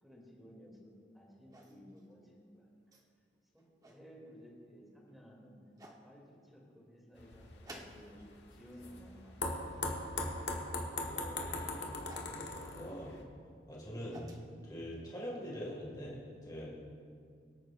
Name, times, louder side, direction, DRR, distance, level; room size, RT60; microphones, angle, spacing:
voice 1, 0.0-2.7 3.5-5.6 6.0-6.2 6.5-8.2 8.5-10.0, equal, ahead, -4 dB, 2.6 m, -56 dB
sound 1, 1.5-2.0 2.9-3.0 3.6-4.0 5.1-5.2 5.8-6.0 7.6-8.3 8.6-9.0 10.1-10.4 12.1-12.4 13.7-14.4, right 1 dB, 20° right, 1.0 m, -54 dB
sound 2, 7.2-13.2, left 2 dB, 80° left, 1.4 m, -40 dB
voice 2, 11.0-11.8 12.3-13.1 13.7-14.3 14.6-16.7, equal, 20° left, -4 dB, 2.0 m, -44 dB
24.0 x 9.1 x 2.5 m, 2.3 s
head